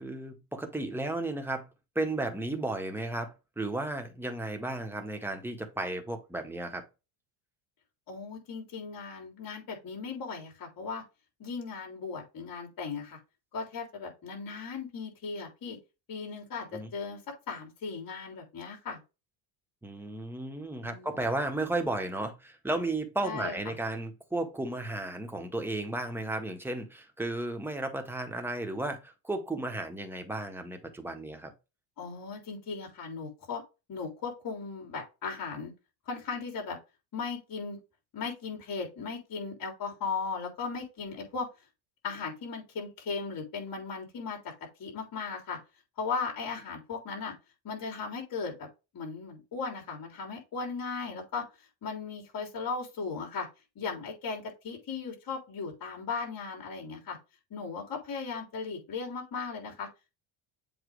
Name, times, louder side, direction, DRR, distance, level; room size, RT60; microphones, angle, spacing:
voice 1, 0.0-1.7 1.9-6.8 16.7-16.9 19.8-31.5, right 2 dB, 5° right, 1.5 m, -34 dB
voice 2, 8.1-11.0 11.4-13.2 13.5-15.8 16.1-17.2 17.5-19.0 20.8-21.2 23.2-23.5 32.0-33.6 33.9-35.7 36.1-36.8 37.1-37.8 38.1-41.5 42.0-44.4 44.8-45.6 46.0-47.3 47.6-48.7 48.9-51.5 51.8-53.5 53.8-57.2 57.5-59.9, left 5 dB, 45° left, 3.5 m, -37 dB
7.7 x 2.8 x 5.0 m
cardioid pair, 110°, 47 cm